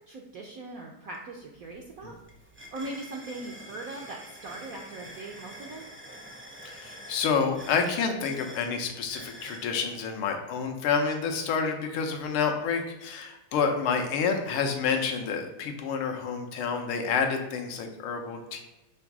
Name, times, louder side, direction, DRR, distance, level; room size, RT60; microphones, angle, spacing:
voice 1, 0.0-2.1 2.7-5.9, right 2 dB, 65° right, 0 dB, 0.9 m, -40 dB
sound 1, 1.1-1.2 1.5-9.7, equal, 10° right, 0.6 m, -47 dB
voice 2, 6.7-18.6, left 5 dB, 80° left, 4 dB, 1.8 m, -29 dB
6.2 x 3.5 x 6.0 m, 0.97 s
omnidirectional pair, 2.3 m